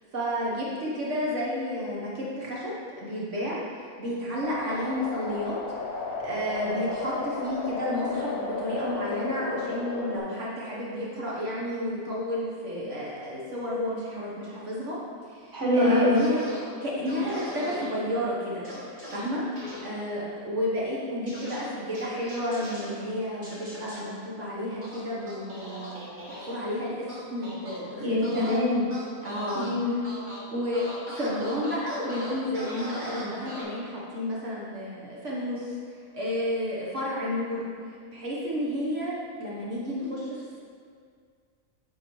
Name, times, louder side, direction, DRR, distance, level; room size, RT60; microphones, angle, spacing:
voice 1, 0.0-5.5 6.0-15.0 15.2-16.4 16.8-26.0 26.3-28.6 29.2-29.6 30.5-40.6, left 1 dB, 60° right, -6 dB, 1.4 m, -31 dB
sound 1, 4.4-10.2, left 3 dB, 45° left, 1.1 m, -33 dB
voice 2, 15.5-16.2 28.0-28.9 29.5-30.0, left 1 dB, 15° right, -7 dB, 1.4 m, -23 dB
sound 2, 16.1-16.6 17.1-17.9 18.6-19.2 19.6-19.8 21.3-21.6 21.9-22.9 23.4-24.0 24.8-26.5 27.1-27.8 28.2-28.6 28.9-29.7 30.0-30.4 30.7-33.6, equal, 35° right, 1.7 m, -40 dB
9.5 x 5.3 x 3.1 m, 2.1 s
omnidirectional pair, 1.5 m